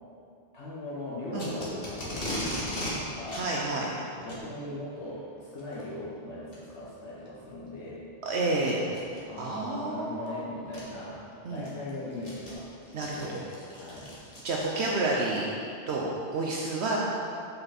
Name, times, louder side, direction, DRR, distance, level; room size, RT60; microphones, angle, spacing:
voice 1, 0.5-3.5 4.2-8.0 9.3-12.7 13.0-14.2, left 1 dB, 80° left, -7 dB, 1.4 m, -39 dB
Packing tape duct tape, 1.4-2.9 3.3-3.5 4.2-4.4 5.6-5.8 6.5-6.6 7.3-7.4 8.9-9.2 10.3-10.4 10.7-10.8 11.3-15.2, left 1 dB, 55° left, 1.8 m, -37 dB
voice 2, 3.3-3.9 8.2-8.8 9.4-10.4 11.4-11.6 12.9-13.3 14.4-15.5 15.9-17.0, right 2 dB, 75° right, -2 dB, 1.0 m, -29 dB
8.3 x 5.6 x 4.2 m, 2.5 s
omnidirectional pair, 1.2 m